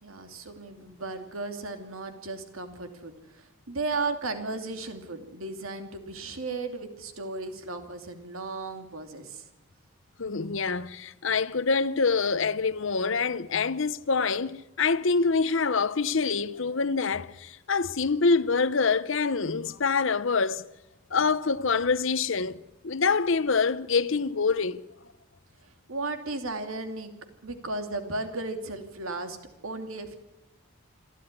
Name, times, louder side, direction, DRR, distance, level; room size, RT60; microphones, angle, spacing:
voice 1, 0.0-9.4 25.9-27.1 27.4-29.4 29.6-30.2, right 3 dB, 75° right, 2.8 m, -35 dB
voice 2, 10.2-20.6 21.1-24.8, left 4 dB, 60° left, 0.8 m, -26 dB
27.0 x 13.0 x 9.8 m
head